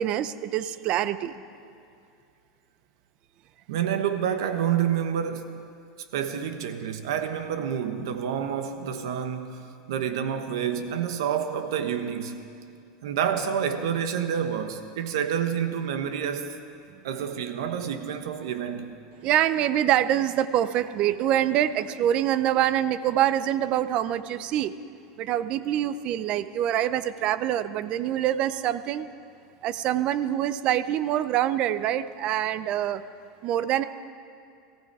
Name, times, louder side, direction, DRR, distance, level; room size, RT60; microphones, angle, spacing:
voice 1, 0.0-1.3 19.2-24.7 25.2-29.1 29.6-33.0 33.4-33.8, right 11 dB, 45° right, 14 dB, 0.6 m, -25 dB
voice 2, 3.7-5.6 6.1-12.5 13.0-16.5 17.0-19.1, right 8 dB, 85° right, 8 dB, 1.3 m, -28 dB
18.5 x 15.0 x 4.8 m, 2.4 s
supercardioid pair, 135°, 2 cm